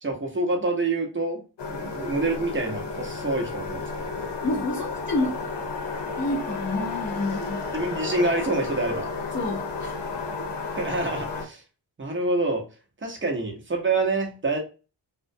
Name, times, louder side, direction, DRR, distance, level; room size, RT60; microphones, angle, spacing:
voice 1, 0.0-1.4 1.7-4.1 7.7-9.1 10.7-11.6 12.0-12.6 13.0-14.6, right 2 dB, 25° right, 2 dB, 0.8 m, -27 dB
sound 1, 1.6-11.5, left 4 dB, 60° left, 0.7 m, -32 dB
voice 2, 4.4-5.4 6.2-7.7 9.3-10.0 10.4-10.5, left 2 dB, 25° left, -2 dB, 0.6 m, -29 dB
2.4 x 2.2 x 2.6 m, 0.33 s
cardioid pair, 55°, 47 cm